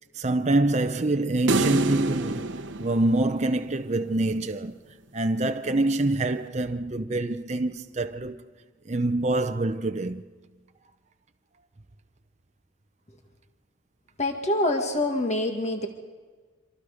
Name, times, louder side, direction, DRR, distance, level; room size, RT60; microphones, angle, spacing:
voice 1, 0.2-4.8 5.1-8.5 8.9-10.2, right 2 dB, 35° right, 0.7 m, -26 dB
sound 1, 1.5-3.9, right 2 dB, 65° right, 0.9 m, -27 dB
voice 2, 14.2-15.9, left 1 dB, 35° left, 1.8 m, -25 dB
26.0 x 25.5 x 5.1 m
head